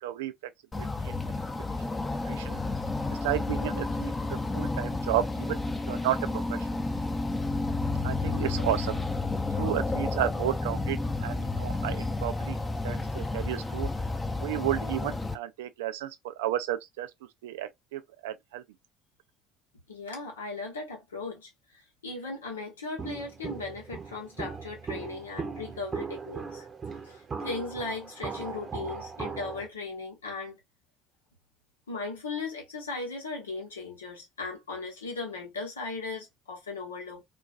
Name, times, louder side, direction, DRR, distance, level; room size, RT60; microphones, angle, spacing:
voice 1, 0.0-0.3 0.7-1.2 2.3-2.6 3.1-4.1 4.5-6.7 8.0-9.0 9.5-12.6 12.8-13.9 14.4-17.1 17.4-18.6, right 13 dB, 75° right, 0.3 m, -32 dB
sound 1, 0.7-15.3, left 3 dB, 20° left, 0.6 m, -31 dB
voice 2, 19.9-30.6 31.9-37.2, left 3 dB, 90° left, 0.9 m, -37 dB
Walk footsteps, 23.0-29.7, right 5 dB, 35° right, 0.6 m, -38 dB
2.3 x 2.2 x 2.4 m
hypercardioid pair, 60°, 0 cm